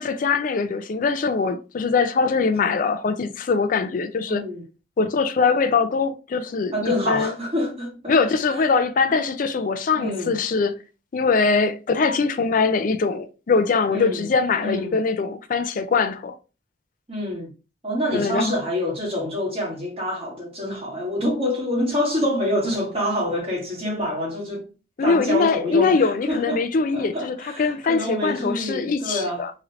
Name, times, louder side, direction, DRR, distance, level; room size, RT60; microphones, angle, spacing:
voice 1, 0.0-4.4 5.0-7.3 8.1-10.8 11.1-16.3 18.1-18.5 25.0-29.5, left 4 dB, 45° left, 0.4 m, -22 dB
voice 2, 4.3-4.6 6.7-8.1 8.6-8.7 9.9-10.3 13.9-14.3 14.6-15.0 17.1-17.5 17.8-24.6 25.0-26.6 26.9-29.4, left 1 dB, 30° right, 1.4 m, -26 dB
3.0 x 2.9 x 2.5 m
head